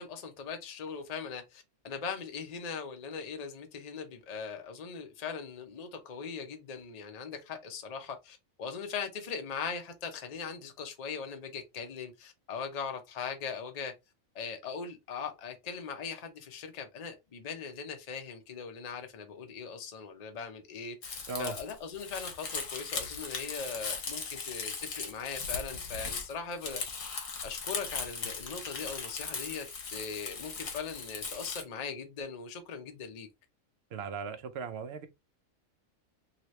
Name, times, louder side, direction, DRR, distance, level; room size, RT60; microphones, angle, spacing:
voice 1, 0.0-13.9 14.3-27.0 27.4-29.7 29.9-33.3, left 6 dB, 40° left, 0.6 m, -40 dB
Crumpling crinkling, 21.0-31.6, left 5 dB, 70° left, 1.3 m, -38 dB
voice 2, 33.9-35.1, right 5 dB, 65° right, 0.7 m, -37 dB
2.9 x 2.8 x 3.0 m
omnidirectional pair, 1.4 m